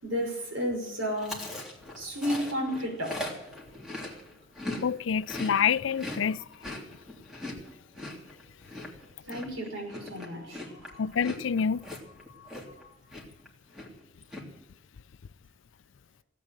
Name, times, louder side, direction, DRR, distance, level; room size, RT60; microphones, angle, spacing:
voice 1, 0.0-1.6 1.9-3.3 7.6-7.7 9.2-11.1 12.3-13.0, equal, 90° right, 5.3 m, -33 dB
Chewing mastication, 1.2-4.8 5.1-12.8 13.1-13.5 13.7-14.4, left 1 dB, 5° right, 3.1 m, -40 dB
voice 2, 4.8-6.4 11.0-11.8, left 7 dB, 70° left, 0.4 m, -27 dB
17.5 x 8.5 x 9.1 m
head